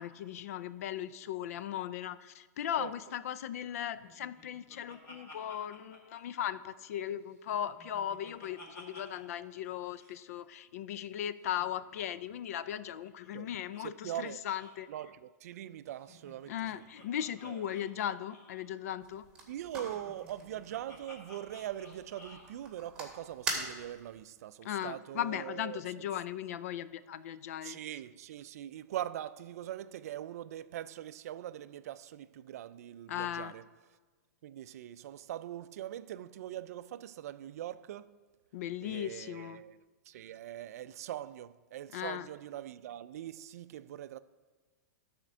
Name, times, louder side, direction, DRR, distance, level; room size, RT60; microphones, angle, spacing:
voice 1, 0.0-14.9 16.5-19.2 24.6-27.8 33.1-33.5 38.5-39.6 41.9-42.3, left 10 dB, 60° left, 0.4 m, -37 dB
Laughter, 4.0-7.0 7.3-9.4 9.6-9.7 9.9-10.2 11.4-13.8 14.1-14.2 14.5-14.8 15.9-18.7 19.7-22.5, left 2 dB, 30° left, 2.2 m, -55 dB
voice 2, 13.8-14.4 14.9-16.8 17.4-17.7 19.5-26.1 27.6-33.6 34.4-38.2 38.8-39.8 40.1-44.2, right 12 dB, 60° right, 0.4 m, -42 dB
sound 1, 19.0-24.2, right 3 dB, 10° right, 1.7 m, -43 dB
12.5 x 4.4 x 6.1 m
supercardioid pair, 165°, 9 cm